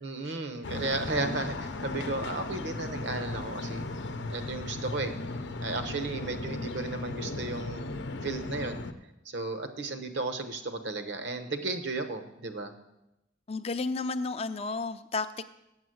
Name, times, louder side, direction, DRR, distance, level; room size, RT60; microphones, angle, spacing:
voice 1, 0.0-3.8 4.3-5.1 5.6-7.9 8.2-8.8 9.2-12.7, right 3 dB, 75° right, 8 dB, 1.0 m, -34 dB
sound 1, 0.6-8.9, left 2 dB, 75° left, 0.7 m, -36 dB
voice 2, 13.5-15.4, left 3 dB, 30° left, 10 dB, 0.4 m, -32 dB
8.0 x 7.6 x 7.8 m, 0.89 s
head